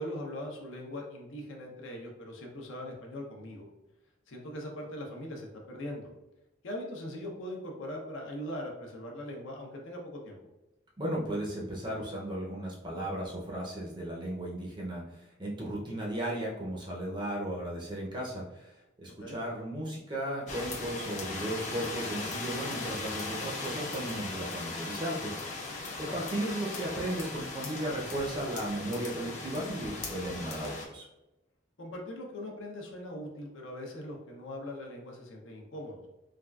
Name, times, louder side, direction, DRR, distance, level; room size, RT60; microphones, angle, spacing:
voice 1, 0.0-3.7 4.3-6.1 6.6-10.4 19.2-19.4 26.0-26.2 31.8-36.0, left 1 dB, 75° left, 0 dB, 0.6 m, -41 dB
voice 2, 11.0-15.0 15.4-18.7 19.0-25.6 26.0-31.0, right 1 dB, 25° right, -3 dB, 0.5 m, -35 dB
sound 1, 20.5-30.9, left 3 dB, 35° left, 0.5 m, -38 dB
3.3 x 2.3 x 2.3 m, 0.97 s
head